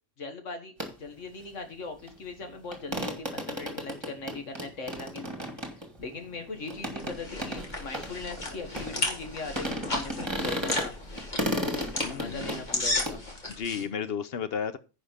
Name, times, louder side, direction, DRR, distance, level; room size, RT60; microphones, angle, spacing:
voice 1, 0.2-10.9 12.1-13.2, left 3 dB, 90° left, 1.9 m, -40 dB
sound 1, 0.8-0.9 2.1-2.2 2.4-2.5 2.7-9.3 9.6-10.9 11.1-13.2, equal, 20° right, 1.9 m, -34 dB
sound 2, 6.7-13.8, left 2 dB, 40° left, 2.1 m, -34 dB
voice 2, 12.0-12.5 13.5-14.8, left 7 dB, 55° left, 1.0 m, -33 dB
10.0 x 5.1 x 5.6 m
omnidirectional pair, 1.2 m